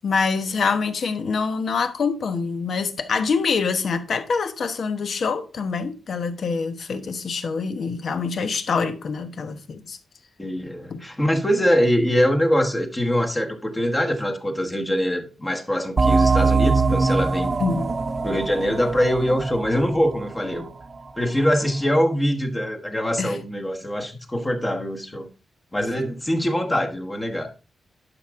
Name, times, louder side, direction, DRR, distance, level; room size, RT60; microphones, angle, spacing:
voice 1, 0.0-10.0 10.9-11.0 17.6-17.9 23.2-23.4, left 5 dB, 55° left, 1.1 m, -25 dB
voice 2, 10.4-17.6 18.2-20.7 21.2-25.3 25.7-27.5, equal, 15° left, 1.3 m, -23 dB
sound 1, 16.0-21.2, right 4 dB, 30° right, 0.6 m, -22 dB
11.0 x 6.1 x 3.7 m
wide cardioid pair, 150°, 0 cm